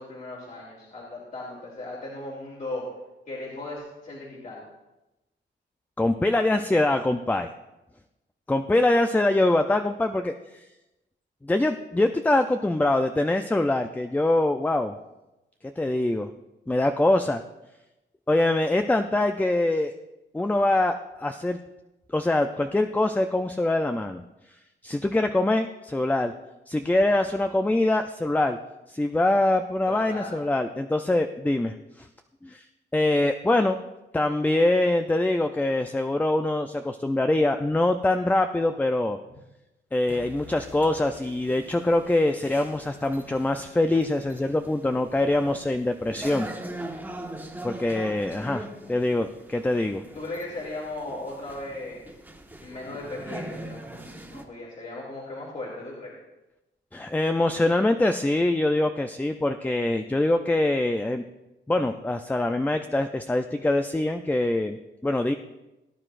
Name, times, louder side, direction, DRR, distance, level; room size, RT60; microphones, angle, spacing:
voice 1, 0.0-2.8 3.3-4.6 29.9-30.3 50.1-52.0 52.6-56.1, left 2 dB, 40° left, -4 dB, 2.6 m, -37 dB
voice 2, 6.0-7.5 8.5-10.6 11.4-14.9 15.8-16.3 16.7-17.4 18.3-19.9 20.3-21.6 22.1-24.2 24.8-26.3 26.7-28.6 28.9-32.1 32.4-32.6 32.9-33.8 34.1-39.2 39.9-46.5 47.6-50.0 56.9-61.2 61.7-65.3, left 2 dB, 10° left, 7 dB, 0.4 m, -24 dB
sound 1, 40.1-54.4, right 1 dB, 10° right, 1.3 m, -42 dB
18.5 x 9.8 x 2.5 m, 0.99 s
cardioid pair, 105°, 20 cm